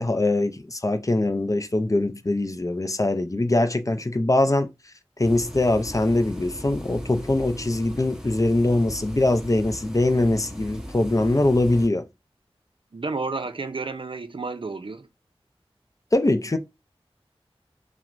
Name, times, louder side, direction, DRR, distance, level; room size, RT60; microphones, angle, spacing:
voice 1, 0.0-4.7 5.2-12.1 16.1-16.6, left 2 dB, 35° left, 0.5 m, -22 dB
sound 1, 5.2-11.9, equal, 5° right, 1.0 m, -38 dB
voice 2, 12.9-15.1, right 3 dB, 55° right, 0.5 m, -31 dB
5.8 x 2.1 x 2.5 m
wide cardioid pair, 40°, 10 cm